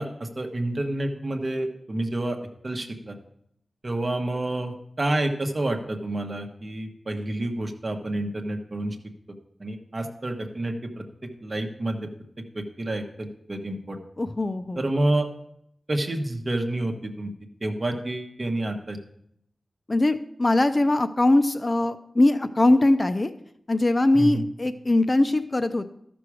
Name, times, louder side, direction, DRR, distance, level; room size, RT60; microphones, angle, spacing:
voice 1, 0.0-2.4 2.6-3.1 3.8-9.0 9.6-11.0 11.4-12.0 12.5-14.0 14.8-15.3 15.9-17.3 17.6-19.0 24.1-24.4, right 1 dB, 40° right, 4 dB, 1.2 m, -28 dB
voice 2, 14.2-14.8 19.9-23.3 23.7-25.9, left 2 dB, 30° left, 10 dB, 0.5 m, -21 dB
13.5 x 6.1 x 4.8 m, 0.73 s
wide cardioid pair, 105°, 0 cm